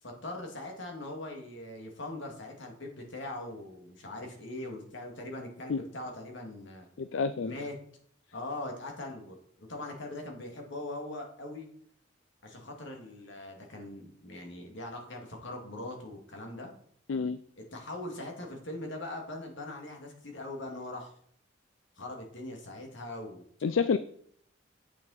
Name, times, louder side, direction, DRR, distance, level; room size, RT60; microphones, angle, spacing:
voice 1, 0.0-6.9 7.4-7.7 8.3-9.4 9.7-11.7 12.4-16.7 17.7-21.1 22.0-23.4, left 1 dB, 70° left, 1 dB, 2.4 m, -41 dB
voice 2, 7.0-7.5 17.1-17.4 23.6-24.0, left 5 dB, 85° left, 13 dB, 0.4 m, -28 dB
8.5 x 7.1 x 4.2 m, 0.62 s
head